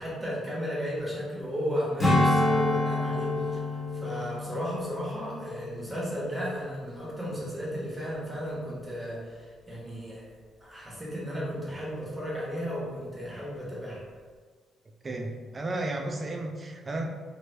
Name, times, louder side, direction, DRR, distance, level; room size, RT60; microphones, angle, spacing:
voice 1, 0.0-3.6 3.9-10.3 10.6-14.0, equal, 10° right, -5 dB, 1.2 m, -34 dB
Strum, 2.0-6.7 7.1-7.3, left 2 dB, 25° left, 1.2 m, -28 dB
voice 2, 15.0-17.0, right 2 dB, 30° right, 3 dB, 0.4 m, -33 dB
2.9 x 2.5 x 3.1 m, 1.5 s
cardioid pair, 90°, 0 cm